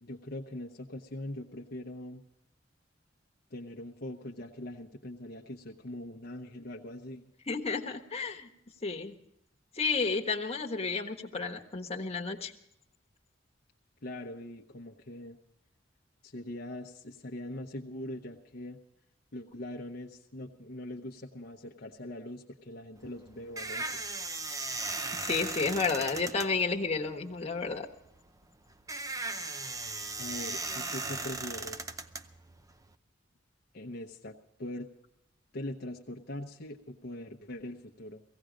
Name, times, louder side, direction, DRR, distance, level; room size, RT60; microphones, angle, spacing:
voice 1, 0.0-2.2 3.5-7.2 14.0-15.4 16.2-18.8 19.3-23.9 30.2-32.0 33.7-34.9 35.5-38.2, left 1 dB, 55° left, 0 dB, 0.9 m, -42 dB
voice 2, 7.5-8.5 8.8-9.2 9.7-12.5 25.2-27.9, left 4 dB, 35° left, 3 dB, 1.3 m, -31 dB
sound 1, 23.0-32.9, right 3 dB, 20° right, 0.6 m, -38 dB
17.0 x 16.0 x 5.1 m, 0.77 s
head